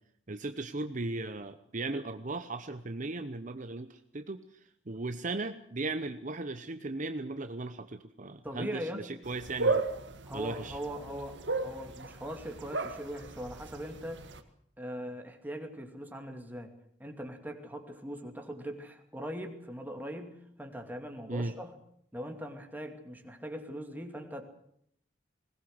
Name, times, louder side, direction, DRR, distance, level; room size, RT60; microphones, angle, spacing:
voice 1, 0.3-4.4 4.9-9.8 10.3-10.8 21.3-21.5, right 2 dB, 45° right, 9 dB, 0.9 m, -37 dB
voice 2, 8.4-9.1 10.2-14.2 14.8-16.7 17.0-21.8 22.1-24.4, equal, 10° right, 4 dB, 2.6 m, -41 dB
sound 1, 9.2-14.4, right 3 dB, 70° right, 1.9 m, -35 dB
21.0 x 18.5 x 7.9 m, 0.69 s
head